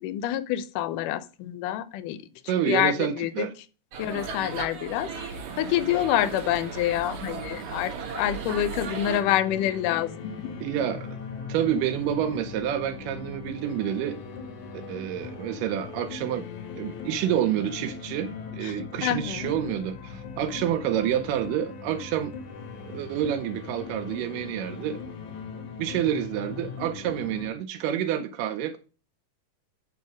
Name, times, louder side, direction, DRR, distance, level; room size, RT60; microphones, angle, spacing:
voice 1, 0.0-2.2 2.7-3.5 4.0-5.1 5.6-10.5 18.6-18.7 19.0-19.6, left 12 dB, 85° left, 2.2 m, -27 dB
voice 2, 2.5-3.5 9.1-9.2 10.6-11.2 11.5-14.2 14.7-16.5 16.8-22.3 22.9-25.0 25.8-28.8, right 10 dB, 85° right, 2.2 m, -28 dB
sound 1, 3.9-9.2, right 5 dB, 65° right, 2.9 m, -36 dB
sound 2, 9.2-27.5, left 5 dB, 70° left, 2.7 m, -39 dB
7.9 x 5.4 x 5.0 m
omnidirectional pair, 3.7 m